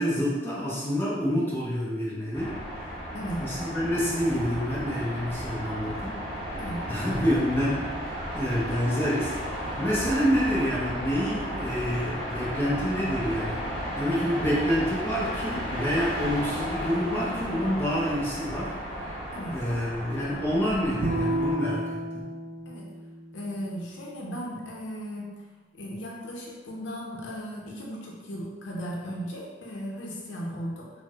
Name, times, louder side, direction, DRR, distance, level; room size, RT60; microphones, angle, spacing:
voice 1, 0.0-2.5 3.4-6.2 6.9-7.9 8.3-9.4 9.8-13.6 14.0-19.2 19.5-22.0, equal, 15° left, -7 dB, 0.5 m, -27 dB
sound 1, 2.3-21.5, equal, 30° left, 1.4 m, -34 dB
voice 2, 3.1-3.5 6.6-6.8 19.3-19.6 22.7-22.9 23.3-25.3 25.7-30.9, equal, 85° left, -3 dB, 0.6 m, -36 dB
Bowed string instrument, 21.0-24.3, right 1 dB, 70° right, 0.4 m, -32 dB
4.3 x 2.0 x 2.3 m, 1.3 s
head